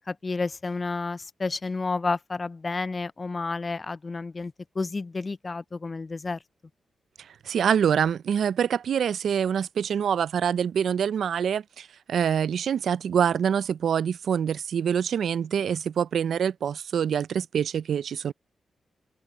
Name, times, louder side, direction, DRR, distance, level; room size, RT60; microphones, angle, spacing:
voice 1, 0.0-6.4, left 3 dB, 40° left, 0.3 m, -31 dB
voice 2, 7.4-18.3, right 8 dB, 80° right, 0.4 m, -25 dB
cardioid pair, 55°, 0 cm